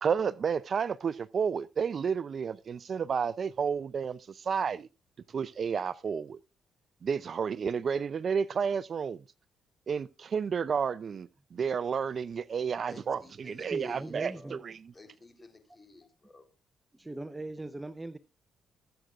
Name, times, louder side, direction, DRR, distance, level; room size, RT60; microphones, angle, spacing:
voice 1, 0.0-4.9 5.3-6.4 7.0-9.2 9.9-14.7, right 6 dB, 50° right, 0.5 m, -31 dB
voice 2, 12.9-14.6 14.9-16.5, left 2 dB, 25° left, 3.5 m, -54 dB
voice 3, 13.7-14.6 16.9-18.2, right 2 dB, 15° right, 0.7 m, -39 dB
21.5 x 7.9 x 2.4 m
cardioid pair, 90°, 0 cm